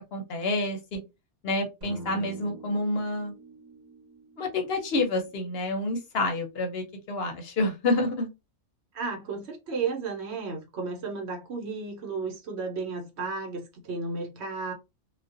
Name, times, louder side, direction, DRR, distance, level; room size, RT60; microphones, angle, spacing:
voice 1, 0.1-1.0 1.4-3.3 4.4-8.3, left 2 dB, 65° left, 0.8 m, -28 dB
sound 1, 1.8-6.0, right 3 dB, 40° right, 0.9 m, -46 dB
voice 2, 8.9-14.7, right 4 dB, 70° right, 1.0 m, -33 dB
2.4 x 2.1 x 2.4 m
omnidirectional pair, 1.2 m